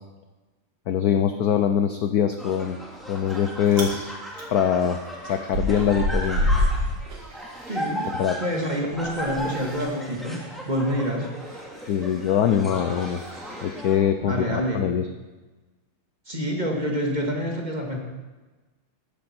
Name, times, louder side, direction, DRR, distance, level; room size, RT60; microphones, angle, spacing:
voice 1, 0.9-2.8 3.1-4.1 4.5-6.4 8.2-8.4 11.9-13.2 13.6-15.1, left 8 dB, 80° left, 8 dB, 0.8 m, -23 dB
sound 1, 2.4-14.0, equal, ahead, 2.1 m, -36 dB
Chewing mastication, 2.9-3.4 3.6-3.9 4.3-8.1 8.4-13.8, left 1 dB, 80° right, 3.5 m, -29 dB
voice 2, 7.7-8.1 8.4-10.4 10.7-11.3 14.2-14.9 16.3-18.0, equal, 20° right, -1 dB, 1.8 m, -27 dB
14.5 x 10.5 x 4.4 m, 1.2 s
omnidirectional pair, 2.3 m